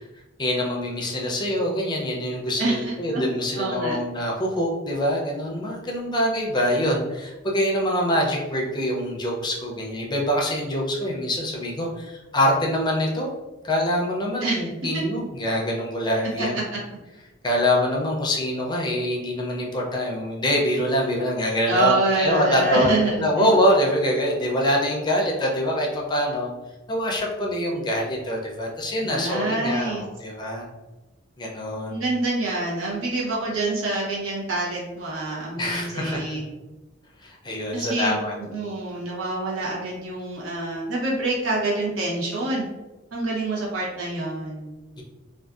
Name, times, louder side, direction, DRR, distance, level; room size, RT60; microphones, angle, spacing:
voice 1, 0.4-13.3 13.6-16.6 17.4-26.5 26.9-30.7 31.4-32.0 35.6-36.2 37.2-38.3, equal, 20° left, -1 dB, 0.4 m, -24 dB
voice 2, 2.6-3.2 3.6-4.0 14.4-14.6 14.9-15.0 16.4-16.6 21.7-23.5 29.0-30.0 31.9-36.5 37.7-38.1 38.5-42.6 43.1-44.8, right 2 dB, 85° right, -4 dB, 0.9 m, -26 dB
2.6 x 2.3 x 2.3 m, 1.1 s
head